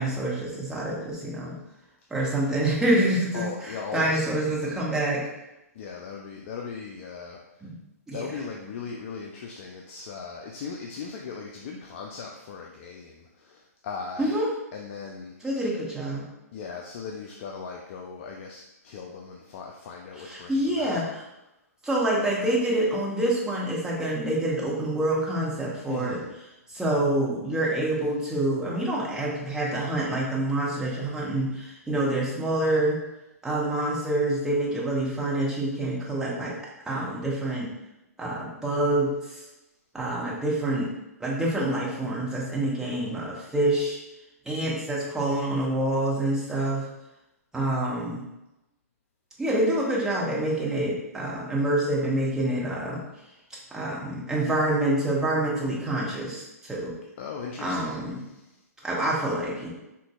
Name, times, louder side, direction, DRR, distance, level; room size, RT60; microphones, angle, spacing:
voice 1, 0.0-1.6 2.1-5.2 7.6-7.8 8.1-8.3 14.2-14.5 15.4-16.2 20.2-21.0 21.8-26.2 26.7-33.0 33.4-36.6 36.9-37.7 38.2-39.4 39.9-40.9 41.2-44.0 44.4-46.9 47.5-48.3 49.4-53.0 53.7-56.9 57.6-58.2 58.8-59.7, right 1 dB, 5° right, -5 dB, 0.8 m, -27 dB
voice 2, 3.3-4.8 5.8-7.7 8.1-14.4 14.7-15.4 16.5-21.0 25.9-26.3 57.2-58.5, left 5 dB, 50° left, 0 dB, 0.4 m, -38 dB
3.8 x 2.5 x 2.3 m, 0.93 s
hypercardioid pair, 130°, 9 cm